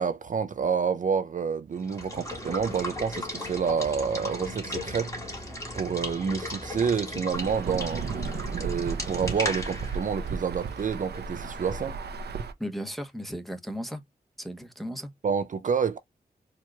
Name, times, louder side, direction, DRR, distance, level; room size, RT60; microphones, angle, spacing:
voice 1, 0.0-8.3 8.6-12.0 15.2-16.0, right 6 dB, 55° right, 0.4 m, -29 dB
Water / Water tap faucet / Liquid, 1.8-11.4, left 1 dB, 20° left, 2.4 m, -37 dB
Insect / Thunder / Rain, 7.3-12.5, right 5 dB, 85° right, 0.7 m, -34 dB
voice 2, 12.6-14.0 14.4-15.1, equal, ahead, 0.9 m, -35 dB
4.4 x 3.0 x 2.2 m
wide cardioid pair, 115°, 16 cm